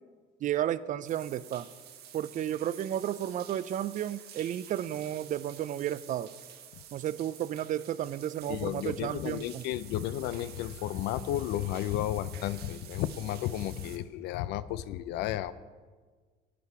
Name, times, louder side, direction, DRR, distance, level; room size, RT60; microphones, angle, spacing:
voice 1, 0.4-1.7 2.1-6.3 6.9-9.6, right 11 dB, 50° right, 17 dB, 0.4 m, -32 dB
sound 1, 1.0-14.0, right 9 dB, 70° right, 1.0 m, -50 dB
voice 2, 8.5-15.5, left 12 dB, 85° left, 16 dB, 0.4 m, -33 dB
9.8 x 8.5 x 4.7 m, 1.5 s
cardioid pair, 110°, 17 cm